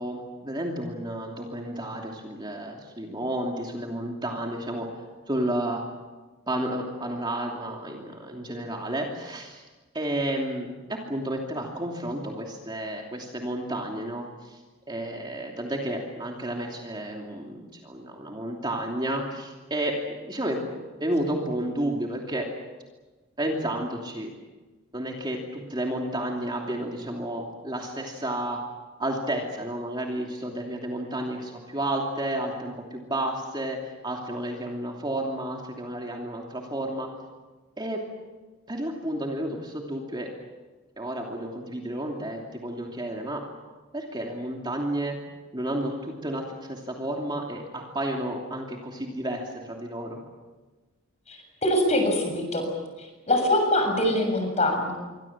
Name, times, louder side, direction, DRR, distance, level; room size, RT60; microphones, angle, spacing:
voice 1, 0.0-4.9 5.3-5.8 6.5-9.6 9.9-14.6 14.9-20.6 21.0-22.5 23.4-24.3 24.9-28.6 29.0-37.1 37.8-38.0 38.7-40.3 41.0-43.5 43.9-45.2 45.5-50.2, right 1 dB, 20° right, 0 dB, 2.9 m, -31 dB
voice 2, 51.3-52.7 53.0-54.9, left 1 dB, 30° left, 4 dB, 7.0 m, -24 dB
28.0 x 24.0 x 7.4 m, 1.2 s
head